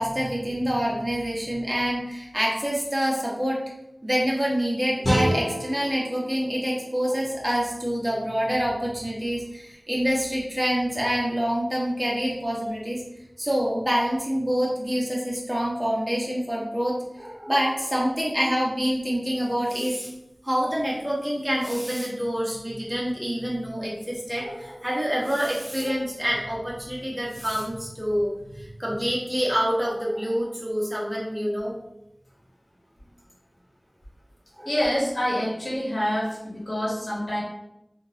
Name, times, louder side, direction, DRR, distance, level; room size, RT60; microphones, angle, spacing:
voice 1, 0.0-3.6 4.0-13.0 13.4-20.1 20.4-31.7 34.6-34.7, equal, 15° right, -5 dB, 1.1 m, -26 dB
sound 1, 5.0-8.1, equal, 40° left, 1.2 m, -30 dB
voice 2, 34.6-37.4, equal, 75° left, -6 dB, 1.0 m, -26 dB
3.6 x 2.5 x 2.8 m, 0.86 s
wide cardioid pair, 40°, 0 cm